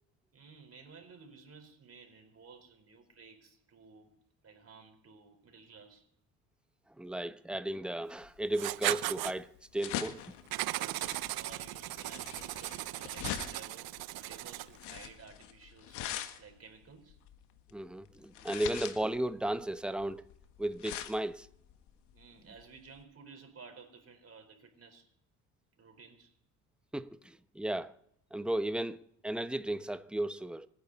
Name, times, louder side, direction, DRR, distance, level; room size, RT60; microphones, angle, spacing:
voice 1, 0.3-4.1 4.4-6.1 10.7-16.0 16.4-17.2 22.1-25.1 25.8-26.3, right 5 dB, 35° right, 4.6 m, -54 dB
voice 2, 7.0-10.2 17.7-20.2 20.6-21.5 26.9-27.9 28.3-30.7, right 1 dB, ahead, 0.9 m, -35 dB
sound 1, 8.2-23.0, left 11 dB, 70° left, 1.6 m, -43 dB
Writing, 8.5-9.3 10.5-14.8, right 17 dB, 55° right, 0.7 m, -37 dB
26.5 x 10.0 x 4.1 m
supercardioid pair, 75°, 43 cm